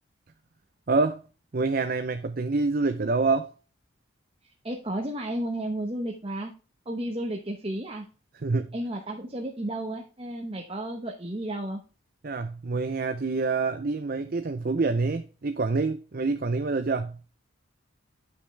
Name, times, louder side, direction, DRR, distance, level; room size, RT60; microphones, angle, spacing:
voice 1, 0.9-1.2 1.5-3.5 8.4-8.7 12.2-17.2, right 3 dB, 45° right, 0.6 m, -26 dB
voice 2, 4.6-6.5 6.8-8.1 8.7-11.8, right 1 dB, 30° right, 1.1 m, -32 dB
9.8 x 6.0 x 3.3 m
head